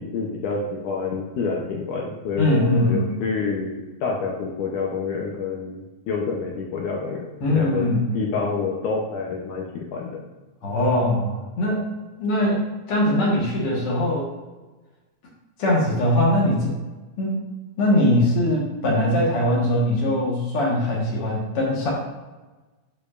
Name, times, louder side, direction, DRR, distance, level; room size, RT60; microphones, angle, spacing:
voice 1, 0.0-10.2, left 4 dB, 80° left, -1 dB, 1.8 m, -28 dB
voice 2, 2.4-3.1 7.4-8.2 10.6-11.9 12.2-12.6 12.9-14.3 15.6-16.7 17.2-17.4 17.8-21.9, left 1 dB, 60° left, -4 dB, 1.5 m, -21 dB
11.5 x 5.0 x 2.5 m, 1.2 s
omnidirectional pair, 4.5 m